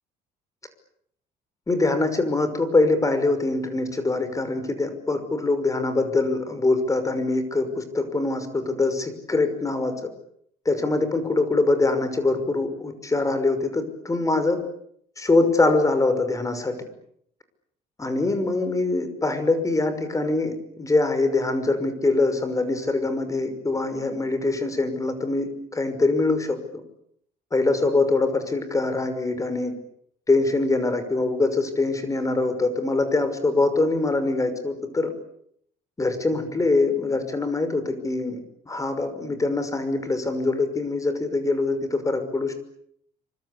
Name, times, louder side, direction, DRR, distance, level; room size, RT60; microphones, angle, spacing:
voice 1, 1.7-9.9 10.7-14.6 15.2-16.7 18.0-26.6 27.5-29.7 30.3-35.1 36.0-38.4 38.7-42.6, left 3 dB, 20° left, 10 dB, 5.8 m, -23 dB
27.5 x 25.0 x 8.6 m, 0.71 s
cardioid pair, 110°, 17 cm